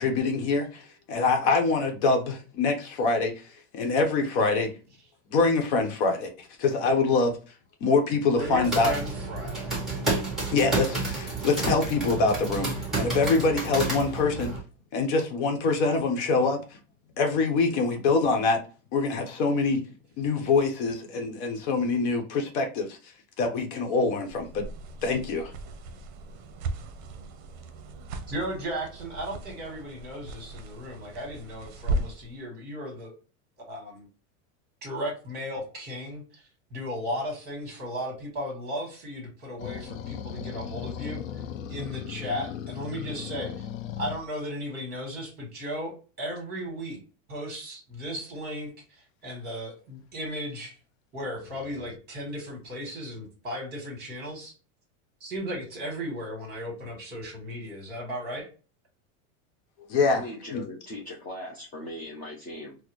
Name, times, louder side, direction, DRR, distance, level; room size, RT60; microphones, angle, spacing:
voice 1, 0.0-3.3 3.7-4.7 5.3-7.4 7.8-8.9 10.5-14.5 14.9-16.6 17.2-18.6 18.9-19.8 20.2-23.0 23.4-24.6 25.0-25.5 59.9-60.2 60.5-60.6, left 3 dB, 55° left, 0.9 m, -25 dB
voice 2, 8.3-9.7 28.3-33.1 33.7-34.0 34.8-36.2 36.7-41.2 41.7-43.5 44.0-45.9 46.2-47.0 47.3-48.7 49.2-50.7 51.1-54.5 55.2-58.4, equal, 25° right, 1.6 m, -35 dB
sound 1, 8.4-14.6, right 3 dB, ahead, 1.2 m, -30 dB
sound 2, 24.3-32.3, right 2 dB, 55° right, 0.7 m, -37 dB
sound 3, 39.6-44.2 51.4-52.0, left 9 dB, 80° left, 0.6 m, -37 dB
voice 3, 60.1-62.8, left 1 dB, 20° left, 0.7 m, -39 dB
4.2 x 2.1 x 3.0 m
supercardioid pair, 160°, 40 cm